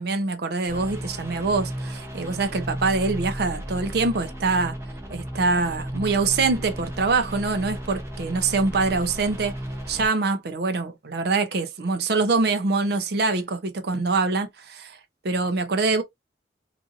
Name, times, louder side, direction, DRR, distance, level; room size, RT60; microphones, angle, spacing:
voice 1, 0.0-4.8 5.1-9.6 9.9-15.0 15.2-16.0, right 3 dB, 60° right, 0.5 m, -24 dB
sound 1, 0.7-10.1, equal, 15° right, 0.7 m, -34 dB
2.6 x 2.5 x 2.5 m
head